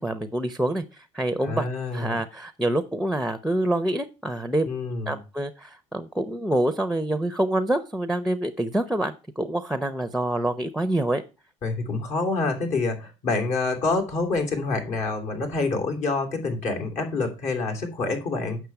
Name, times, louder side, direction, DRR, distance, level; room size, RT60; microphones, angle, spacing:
voice 1, 0.0-1.7 1.9-4.8 5.1-11.2, right 1 dB, ahead, 11 dB, 0.7 m, -26 dB
voice 2, 1.4-2.1 4.6-5.2 11.6-18.6, left 3 dB, 55° left, 4 dB, 3.1 m, -27 dB
8.3 x 6.1 x 5.9 m, 0.31 s
supercardioid pair, 110°, 15 cm